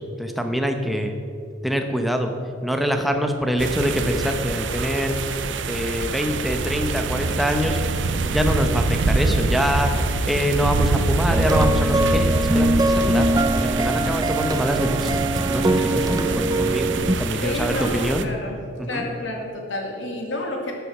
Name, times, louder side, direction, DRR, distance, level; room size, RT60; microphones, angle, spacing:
voice 1, 0.2-1.2 1.6-2.3 2.6-5.3 5.7-7.8 8.2-9.9 10.3-18.3 18.8-19.1, equal, ahead, 4 dB, 0.9 m, -25 dB
sound 1, 3.6-18.2, right 3 dB, 70° right, 0.6 m, -25 dB
sound 2, 11.3-17.1, right 1 dB, 20° right, 0.4 m, -22 dB
voice 2, 17.4-18.6 18.9-20.7, left 1 dB, 80° left, 1 dB, 2.1 m, -29 dB
12.5 x 6.9 x 6.1 m, 2.5 s
head